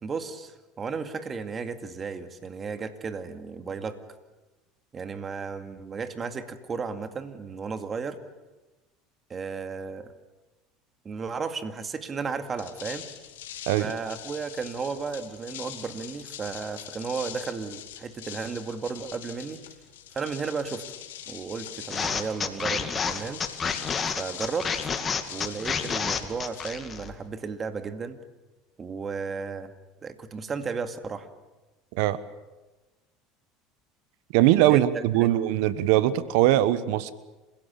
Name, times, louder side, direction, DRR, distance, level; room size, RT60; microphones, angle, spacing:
voice 1, 0.0-4.0 4.9-8.2 9.3-10.1 11.0-13.1 13.8-19.6 20.1-20.9 21.3-23.5 24.2-24.9 25.3-28.2 28.8-29.7 30.0-31.3 34.7-35.3, right 5 dB, 30° right, 9 dB, 2.2 m, -34 dB
sound 1, 12.5-27.3, left 11 dB, 90° left, 2.5 m, -43 dB
sound 2, 21.9-27.1, left 6 dB, 30° left, 2.3 m, -29 dB
voice 2, 34.3-37.1, right 14 dB, 75° right, 16 dB, 1.1 m, -21 dB
27.5 x 16.5 x 8.6 m, 1.1 s
supercardioid pair, 95°, 0 cm